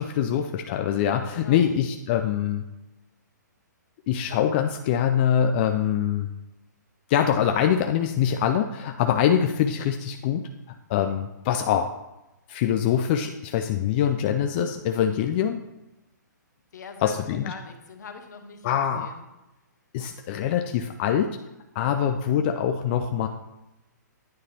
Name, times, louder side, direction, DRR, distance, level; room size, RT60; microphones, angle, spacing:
voice 1, 0.0-2.6 4.1-6.3 7.1-10.4 10.9-11.9 12.5-15.6 17.0-17.5 18.6-19.1 19.9-21.4 21.8-23.3, left 9 dB, 35° left, 5 dB, 0.4 m, -24 dB
voice 2, 1.3-1.6 16.7-19.3 21.8-22.1, left 5 dB, 65° left, 6 dB, 1.0 m, -43 dB
9.4 x 3.2 x 4.2 m, 0.96 s
hypercardioid pair, 140°, 10 cm